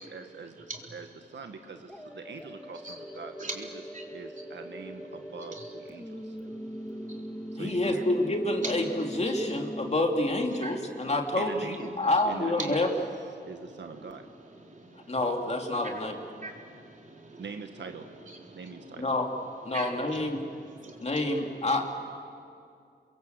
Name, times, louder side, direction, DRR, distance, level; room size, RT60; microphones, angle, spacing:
voice 1, 0.0-3.7 4.1-6.4 7.5-8.1 11.4-12.0 12.3-12.8 13.4-14.3 17.4-18.1 18.5-19.1, right 5 dB, 80° right, 6 dB, 1.6 m, -43 dB
sound 1, 1.9-9.9, equal, 5° left, 1.9 m, -41 dB
voice 2, 5.2-7.6 8.6-8.7 10.6-10.8 12.7-12.9 13.4-13.5 13.8-19.1 19.7-21.6, right 2 dB, 45° right, 0 dB, 3.9 m, -45 dB
voice 3, 7.6-12.9 15.1-16.2 19.0-19.3 19.6-20.4 21.0-21.8, left 2 dB, 35° left, 2 dB, 2.9 m, -28 dB
29.0 x 22.5 x 8.1 m, 2.4 s
wide cardioid pair, 95°, 18 cm